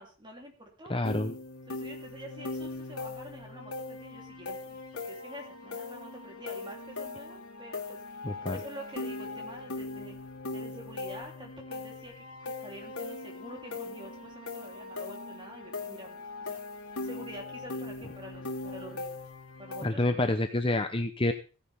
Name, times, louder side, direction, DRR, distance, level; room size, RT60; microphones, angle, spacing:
voice 1, 0.0-1.0 1.7-10.2 10.5-19.3 19.6-20.2, right 1 dB, 20° right, 1 dB, 3.2 m, -47 dB
voice 2, 0.9-1.3 8.2-8.6 19.8-21.3, left 2 dB, 25° left, 7 dB, 0.7 m, -28 dB
sound 1, 1.0-19.9, left 3 dB, 90° left, 2.2 m, -40 dB
15.5 x 10.0 x 3.5 m, 0.34 s
head